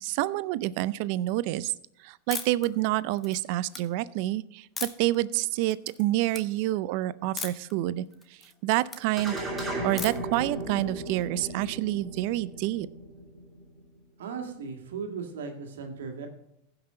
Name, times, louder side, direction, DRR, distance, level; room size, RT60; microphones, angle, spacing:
voice 1, 0.0-1.7 2.0-8.1 8.6-9.4 9.8-12.9, right 16 dB, 60° right, 18 dB, 0.4 m, -28 dB
sound 1, 2.3-2.7 3.1-3.8 4.8-5.2 5.6-6.0 6.3-6.4 7.4-7.7 8.1-9.0 10.0-10.4, left 5 dB, 20° left, 1.2 m, -37 dB
sound 2, 9.2-13.8, right 1 dB, 15° right, 2.8 m, -36 dB
voice 2, 14.2-16.3, right 5 dB, 80° right, 4 dB, 1.9 m, -37 dB
15.5 x 5.9 x 3.8 m, 0.80 s
hypercardioid pair, 110°, 0 cm